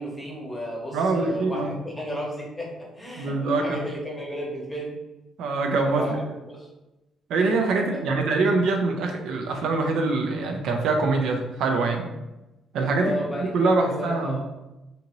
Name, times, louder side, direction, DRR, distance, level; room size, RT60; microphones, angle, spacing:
voice 1, 0.0-4.9 6.0-6.7 7.8-8.2 13.0-14.4, equal, 10° left, -3 dB, 0.9 m, -33 dB
voice 2, 0.9-1.7 3.2-3.8 5.4-6.1 7.3-12.1 12.7-13.2 13.5-14.4, right 3 dB, 75° right, 3 dB, 0.4 m, -24 dB
2.7 x 2.5 x 2.9 m, 1.0 s
cardioid pair, 115°, 0 cm